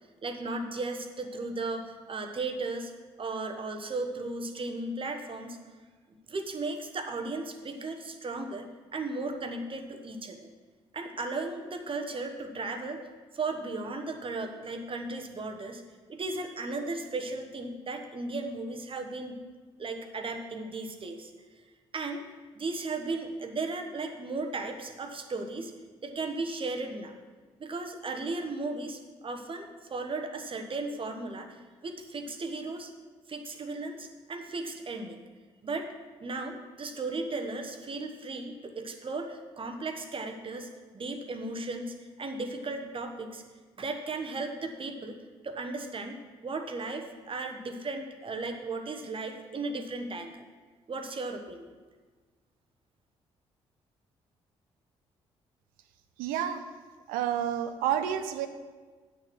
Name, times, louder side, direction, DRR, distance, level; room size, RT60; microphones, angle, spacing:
voice 1, 0.2-2.9 3.2-5.6 6.3-10.5 10.9-13.0 13.3-15.8 16.1-19.4 19.8-21.3 21.9-22.2 22.5-25.7 26.0-27.1 27.6-32.9 33.3-35.2 35.6-35.9 36.2-43.4 43.8-45.2 45.4-50.3 50.9-51.7, right 3 dB, 35° right, 4 dB, 1.2 m, -36 dB
voice 2, 56.2-56.6 57.1-58.5, right 10 dB, 65° right, 10 dB, 0.7 m, -29 dB
9.1 x 6.6 x 6.2 m, 1.4 s
figure-of-eight pair, 40°, 15 cm